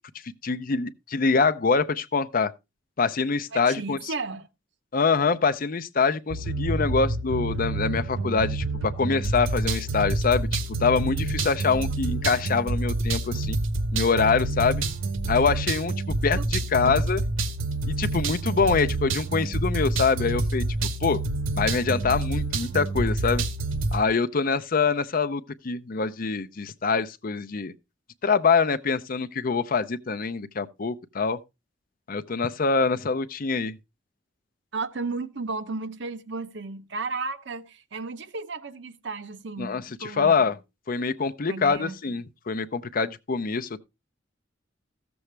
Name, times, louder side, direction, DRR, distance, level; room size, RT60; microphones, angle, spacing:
voice 1, 0.4-2.5 3.0-4.1 4.9-13.6 13.9-14.8 15.3-17.2 17.9-20.6 21.0-21.2 21.6-23.4 23.9-27.7 28.2-31.4 32.1-33.8 39.6-40.5 40.9-43.8, left 5 dB, 45° left, 0.6 m, -25 dB
voice 2, 3.5-4.5 16.3-16.4 16.8-16.9 34.7-40.5 41.5-42.0, right 3 dB, 60° right, 0.8 m, -34 dB
sound 1, 6.3-24.0, right 2 dB, 85° right, 1.0 m, -28 dB
14.5 x 7.0 x 3.2 m
head